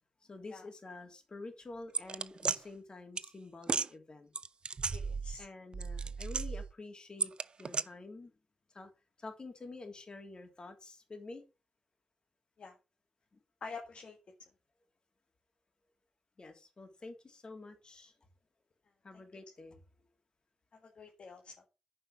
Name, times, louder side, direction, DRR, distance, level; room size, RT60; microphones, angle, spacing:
voice 1, 0.2-4.3 5.4-7.3 7.6-8.3 8.7-8.9 9.2-11.4 13.3-13.4 16.4-18.1 19.0-19.8, left 3 dB, 40° left, 3.2 m, -48 dB
sound 1, 1.9-2.6 3.2-3.3 3.6-3.9 4.4-5.5 5.7-6.7 7.2-7.8, right 5 dB, 50° right, 0.5 m, -34 dB
voice 2, 4.9-5.5 12.6-12.8 13.6-14.2 20.8-21.5, left 4 dB, 60° left, 1.9 m, -47 dB
9.9 x 5.5 x 6.2 m
cardioid pair, 60°, 2 cm